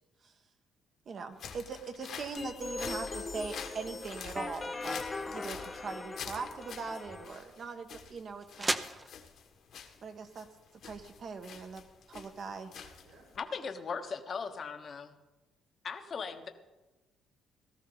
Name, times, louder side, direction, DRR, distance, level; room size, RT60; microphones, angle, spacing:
voice 1, 1.0-8.7 10.0-10.5 10.8-12.7, right 5 dB, 45° right, 6 dB, 1.4 m, -41 dB
sound 1, 1.3-13.4, left 7 dB, 65° left, 1.7 m, -47 dB
sound 2, 2.4-7.4, left 3 dB, 20° left, 0.7 m, -40 dB
sound 3, 5.9-11.8, right 2 dB, 15° right, 0.8 m, -41 dB
voice 2, 7.2-7.6 12.7-13.7, right 3 dB, 90° right, -4 dB, 4.7 m, -60 dB
voice 3, 13.4-15.1 15.8-16.5, left 5 dB, 40° left, 6 dB, 1.2 m, -38 dB
17.5 x 13.5 x 4.0 m, 1.1 s
cardioid pair, 120°, 0 cm